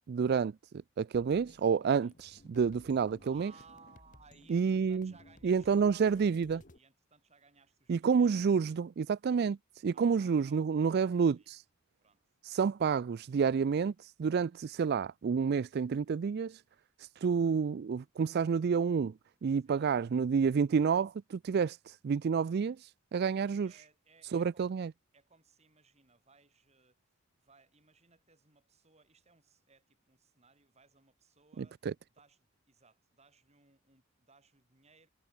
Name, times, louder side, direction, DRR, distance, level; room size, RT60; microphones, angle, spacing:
voice 1, 0.1-0.5 1.0-3.5 4.5-5.1 5.4-6.6 7.9-11.6 12.4-16.6 17.0-19.1 19.4-23.7 24.3-24.9 31.6-31.9, right 6 dB, 50° right, 0.3 m, -29 dB
sound 1, 1.1-6.8, left 1 dB, 40° left, 1.5 m, -59 dB
voice 2, 3.2-8.4 9.9-11.5 12.0-12.2 19.7-19.8 23.3-24.7 25.1-27.0 27.4-31.9 32.1-35.1, right 4 dB, 30° right, 5.8 m, -63 dB
head